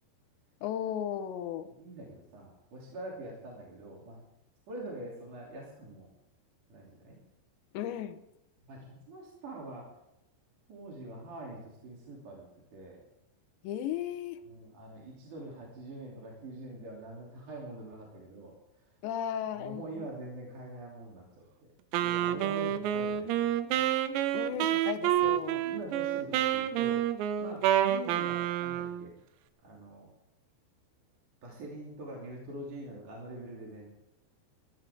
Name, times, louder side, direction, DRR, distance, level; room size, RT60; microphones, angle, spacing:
voice 1, 0.6-1.7 7.7-8.2 13.6-14.4 19.0-20.1 24.3-25.6, left 10 dB, 75° left, 7 dB, 3.1 m, -35 dB
voice 2, 1.8-4.2 4.7-6.1 6.7-7.2 8.7-9.9 10.7-13.0 14.5-18.6 19.6-21.4 22.0-23.8 25.2-25.4 25.6-27.1 27.4-29.1 29.6-30.1 31.4-33.9, right 2 dB, 45° right, -3 dB, 4.0 m, -44 dB
Wind instrument woodwind instrument, 21.9-29.1, right 11 dB, 80° right, 2.9 m, -29 dB
21.0 x 15.5 x 3.6 m, 0.87 s
omnidirectional pair, 5.4 m